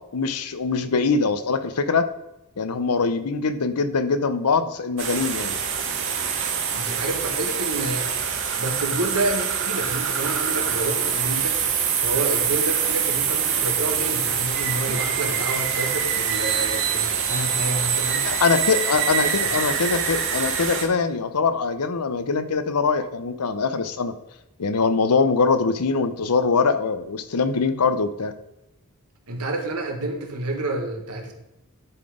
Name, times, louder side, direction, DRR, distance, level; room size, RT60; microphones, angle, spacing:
voice 1, 0.1-2.1 2.6-5.6 18.2-24.1 24.6-28.3, left 4 dB, 85° left, 11 dB, 0.7 m, -23 dB
sound 1, 5.0-20.8, right 7 dB, 60° right, 1.3 m, -25 dB
voice 2, 6.7-8.1 8.6-11.6 12.0-18.2 19.2-19.5 29.3-31.3, right 2 dB, 80° right, 3 dB, 1.5 m, -29 dB
11.0 x 3.9 x 4.9 m, 0.92 s
head